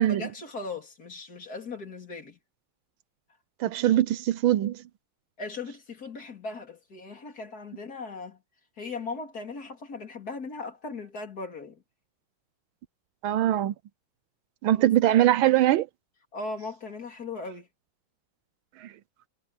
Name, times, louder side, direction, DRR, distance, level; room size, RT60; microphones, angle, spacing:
voice 1, 0.0-2.4 5.4-8.4 8.8-11.8 14.7-14.9 16.3-17.7, left 3 dB, 45° left, 3.6 m, -38 dB
voice 2, 3.6-4.8 13.2-13.7 14.6-15.9 18.8-18.9, right 13 dB, 80° right, 1.5 m, -22 dB
omnidirectional pair, 2.2 m